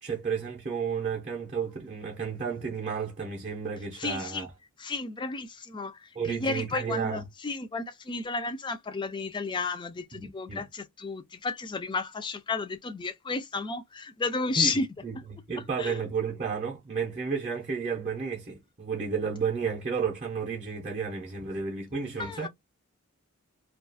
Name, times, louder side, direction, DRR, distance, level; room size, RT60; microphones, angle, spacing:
voice 1, 0.0-4.5 6.2-7.2 10.1-10.7 14.6-14.7 15.0-22.5, right 5 dB, 30° right, 0.6 m, -32 dB
voice 2, 3.9-4.5 4.8-14.9 15.8-16.0 22.2-22.5, left 4 dB, 20° left, 0.3 m, -32 dB
2.3 x 2.3 x 2.4 m
head